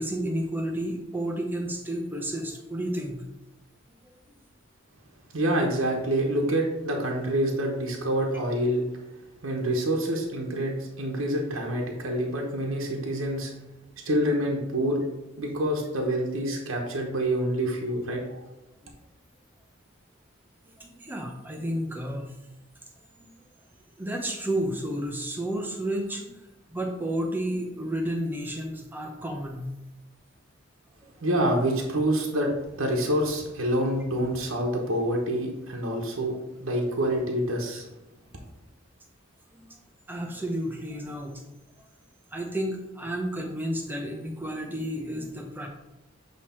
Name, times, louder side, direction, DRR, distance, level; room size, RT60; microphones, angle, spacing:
voice 1, 0.0-3.2 20.8-22.3 23.2-23.3 24.0-26.3 26.7-29.7 31.0-31.1 38.3-38.4 39.5-39.7 40.1-41.4 42.3-45.7, right 1 dB, 10° right, 1 dB, 0.8 m, -31 dB
voice 2, 5.3-8.8 9.4-13.5 14.0-15.0 15.4-18.4 31.2-37.9, right 1 dB, 80° right, 0 dB, 1.0 m, -27 dB
7.8 x 3.1 x 4.3 m, 1.0 s
head